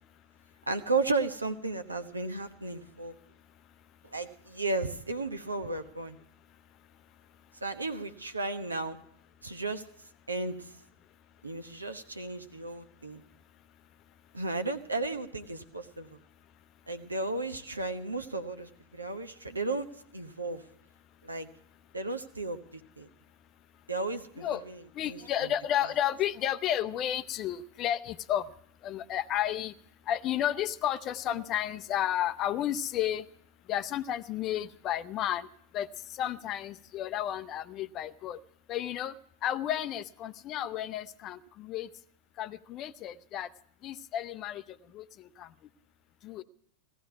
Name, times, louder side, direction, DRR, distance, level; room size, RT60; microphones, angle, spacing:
voice 1, 0.7-3.1 4.0-6.2 7.6-9.0 9.4-9.8 10.3-10.8 11.4-13.2 14.3-16.2 16.9-19.9 20.1-20.6 21.2-21.5 21.9-23.1 23.9-25.5, right 3 dB, 80° right, 9 dB, 1.0 m, -34 dB
voice 2, 3.2-3.6 6.5-7.6 24.4-24.6 24.9-28.5 28.8-29.8 30.0-33.3 33.6-38.4 38.7-41.9 42.4-43.5 43.8-45.5 46.2-46.4, left 11 dB, 35° left, 13 dB, 0.6 m, -33 dB
17.5 x 14.5 x 4.7 m, 0.69 s
figure-of-eight pair, 90°, 0 cm